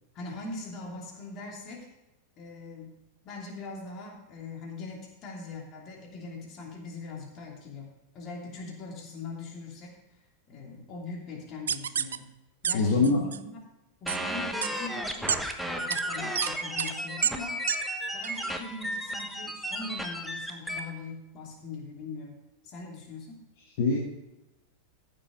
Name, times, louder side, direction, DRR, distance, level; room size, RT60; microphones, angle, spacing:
voice 1, 0.1-1.9 2.4-3.0 3.2-10.0 10.5-12.3 12.6-13.6 14.0-15.4 15.6-17.6 18.1-22.4 22.6-23.4, left 3 dB, 35° left, 0 dB, 2.9 m, -41 dB
sound 1, 11.7-12.2 12.6-12.7 13.0-13.4 14.1-14.2 14.6-14.7 15.3-15.4 15.9-16.0 16.4-16.5 16.8-16.9 17.2-17.3 17.7-17.8 18.2-18.3, right 8 dB, 65° right, 0.4 m, -28 dB
voice 2, 12.7-13.2 23.8-24.0, left 3 dB, 50° left, -1 dB, 1.8 m, -23 dB
sound 2, 14.1-20.8, equal, ahead, 1.1 m, -34 dB
14.5 x 7.1 x 4.9 m, 0.97 s
figure-of-eight pair, 90°, 0 cm